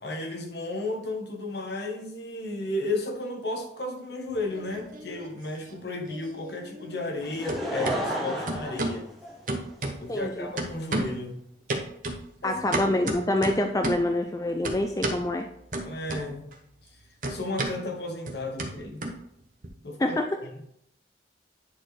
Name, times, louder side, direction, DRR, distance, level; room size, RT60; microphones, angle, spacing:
voice 1, 0.0-9.1 10.0-11.5 12.4-12.6 15.8-16.6 17.3-19.0 19.8-20.5, left 2 dB, 65° left, 2 dB, 1.2 m, -33 dB
sound 1, 4.3-5.3 5.6-7.2 7.5-8.0 8.5-9.0 9.5-10.3 10.6-11.2 11.7-14.1 14.6-15.2 15.7-16.6 16.8-19.7, right 2 dB, 45° right, 0.9 m, -33 dB
Laughter / Crowd, 7.2-9.8 10.5-10.6, right 1 dB, ahead, 1.0 m, -32 dB
voice 2, 10.1-10.5 12.4-15.5 20.0-20.3, left 1 dB, 20° left, 4 dB, 0.3 m, -26 dB
9.6 x 4.3 x 3.3 m, 0.73 s
head